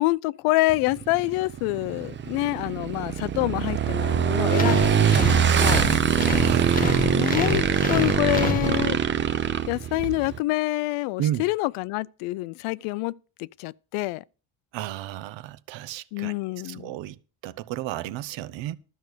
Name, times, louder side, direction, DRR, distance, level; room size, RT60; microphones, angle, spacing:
voice 1, 0.0-5.8 7.0-9.0 9.7-14.2 16.1-16.9, left 20 dB, 85° left, 0.6 m, -27 dB
Motorcycle / Engine, 0.7-10.4, right 8 dB, 25° right, 0.6 m, -23 dB
sound 1, 4.5-9.2, left 3 dB, 15° left, 1.2 m, -29 dB
voice 2, 6.3-6.9 11.2-11.5 14.7-17.2 17.4-18.8, right 13 dB, 65° right, 0.9 m, -32 dB
12.5 x 6.3 x 6.7 m
cardioid pair, 155°, 48 cm